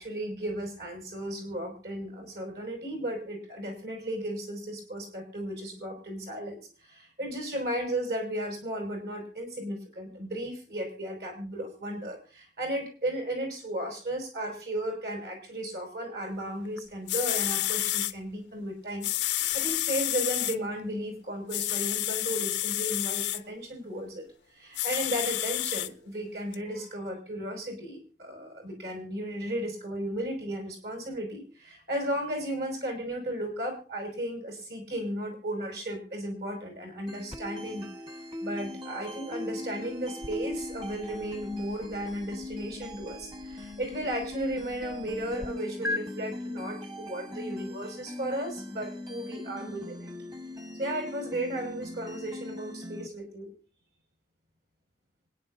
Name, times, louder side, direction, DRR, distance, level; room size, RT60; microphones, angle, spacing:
voice 1, 0.0-24.3 24.5-37.9 38.4-50.1 50.8-53.5, right 1 dB, 65° right, 3 dB, 5.9 m, -35 dB
sound 1, 16.8-16.9 17.1-18.1 19.0-20.6 21.5-23.4 24.7-25.9 26.5-26.6, left 15 dB, 90° left, 0.6 m, -29 dB
sound 2, 37.1-53.1, left 1 dB, 25° right, 1.3 m, -40 dB
sound 3, 37.3-45.5 45.8-46.0, left 2 dB, 5° right, 0.7 m, -43 dB
25.5 x 10.5 x 2.6 m, 0.36 s
head